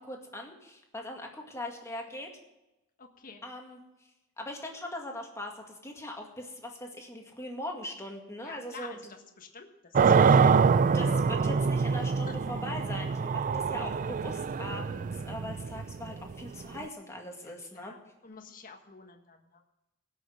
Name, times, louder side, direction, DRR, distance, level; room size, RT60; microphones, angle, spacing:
voice 1, 0.0-2.3 3.4-3.8 4.4-9.0 10.9-18.0, left 1 dB, 15° left, 1 dB, 2.0 m, -40 dB
voice 2, 3.0-3.4 8.4-11.0 12.0-12.4 13.7-13.9 17.4-19.6, left 4 dB, 40° left, 4 dB, 1.5 m, -49 dB
sound 1, 10.0-16.9, right 5 dB, 35° right, 0.4 m, -25 dB
17.5 x 6.5 x 7.6 m, 0.96 s
head